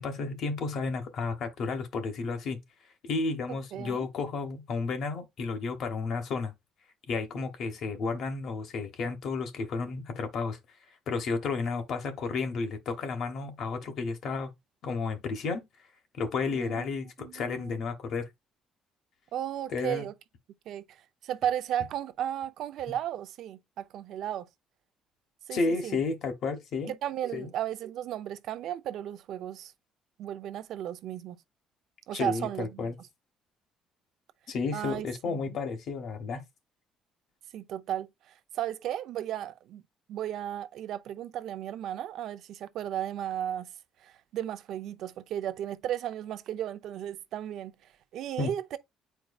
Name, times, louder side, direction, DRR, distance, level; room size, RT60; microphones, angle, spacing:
voice 1, 0.0-2.6 3.0-6.5 7.1-10.6 11.1-14.5 14.8-15.7 16.1-18.3 19.7-20.1 25.5-26.9 27.3-27.5 32.1-32.9 34.5-36.4 48.4-48.5, left 4 dB, 55° left, 1.1 m, -32 dB
voice 2, 3.7-4.1 16.5-16.9 17.2-17.7 19.3-20.1 20.7-24.5 25.5-26.0 26.9-29.7 30.2-31.4 32.1-32.9 34.7-35.6 37.5-39.8 40.1-43.7 44.0-48.8, right 11 dB, 65° right, 0.5 m, -35 dB
8.8 x 4.5 x 2.3 m
cardioid pair, 150°, 0 cm